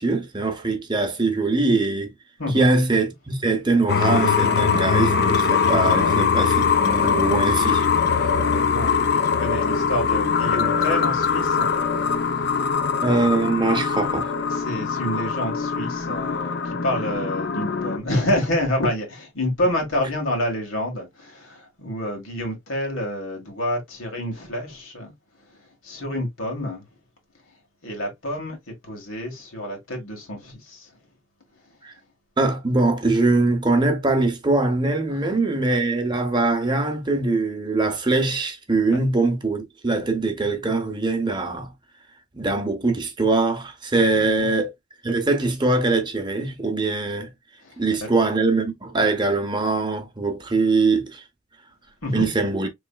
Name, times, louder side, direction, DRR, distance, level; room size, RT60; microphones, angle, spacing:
voice 1, 0.0-2.1 2.5-7.9 13.0-14.3 31.8-31.9 32.4-41.7 42.3-44.7 45.0-47.3 47.8-51.2 52.1-52.7, right 3 dB, 20° right, 0.7 m, -22 dB
sound 1, 3.9-18.0, left 6 dB, 50° left, 0.5 m, -22 dB
voice 2, 6.0-6.5 8.3-12.8 14.5-25.1 25.4-26.9 27.8-30.9 35.1-35.2 38.9-39.0 44.0-44.5 47.6-48.1 52.0-52.3, left 1 dB, 85° left, 1.6 m, -28 dB
4.1 x 3.1 x 2.2 m
head